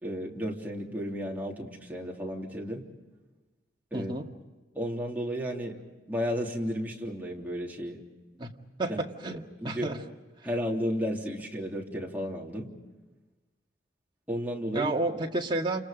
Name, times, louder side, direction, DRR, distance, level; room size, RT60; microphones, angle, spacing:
voice 1, 0.0-2.9 3.9-4.1 4.7-5.8 6.1-8.0 8.9-9.0 9.2-9.9 10.4-12.7 14.3-14.9, equal, 10° right, -2 dB, 3.3 m, -33 dB
voice 2, 3.9-4.3 8.4-10.0 14.7-15.8, right 2 dB, 25° right, 0 dB, 2.0 m, -31 dB
29.5 x 28.0 x 5.2 m, 1.2 s
head